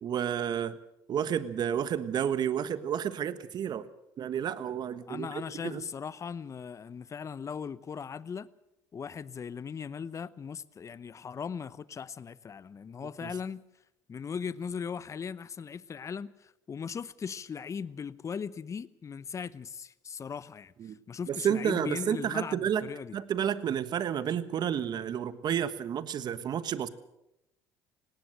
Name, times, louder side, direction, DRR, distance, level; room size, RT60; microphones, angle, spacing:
voice 1, 0.0-0.8 1.1-3.9 4.2-5.3 5.6-5.9 13.2-13.3 20.8-21.0 21.3-26.9, right 9 dB, 50° right, 1.4 m, -31 dB
voice 2, 5.1-8.5 8.9-13.6 14.1-23.2, left 6 dB, 35° left, 0.8 m, -39 dB
18.5 x 18.5 x 7.8 m
supercardioid pair, 70°, 9 cm